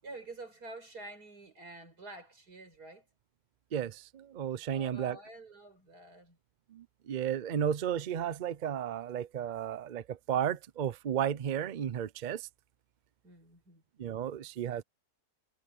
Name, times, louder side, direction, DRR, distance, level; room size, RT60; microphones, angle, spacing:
voice 1, 0.0-3.1 4.6-6.4 13.2-13.8, right 2 dB, 80° right, 6.2 m, -48 dB
voice 2, 3.7-5.2 6.7-12.5 14.0-14.8, right 9 dB, 60° right, 0.4 m, -33 dB
omnidirectional pair, 1.6 m